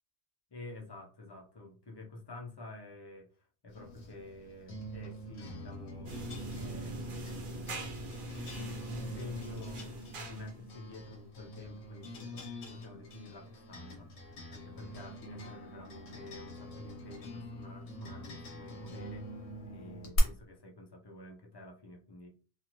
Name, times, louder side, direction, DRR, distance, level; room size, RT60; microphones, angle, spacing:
voice 1, 0.5-6.1 6.6-7.9 8.5-14.2 14.5-19.3 19.7-22.3, left 2 dB, 40° left, 1 dB, 0.3 m, -49 dB
sound 1, 3.7-20.2, equal, 70° left, 1.1 m, -45 dB
sound 2, 6.1-10.7, right 1 dB, 55° right, 0.8 m, -43 dB
2.6 x 2.4 x 2.9 m, 0.37 s
omnidirectional pair, 1.2 m